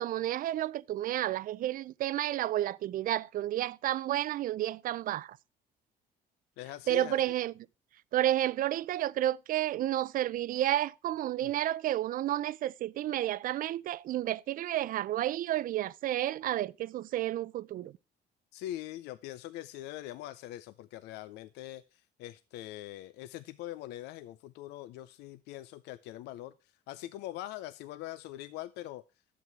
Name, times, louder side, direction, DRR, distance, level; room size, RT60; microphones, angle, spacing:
voice 1, 0.0-5.4 6.9-7.5 8.1-17.9, right 13 dB, 55° right, 0.4 m, -31 dB
voice 2, 6.6-7.2 11.4-11.6 18.5-29.0, left 14 dB, 90° left, 0.5 m, -43 dB
11.0 x 7.5 x 4.7 m
cardioid pair, 110°, 17 cm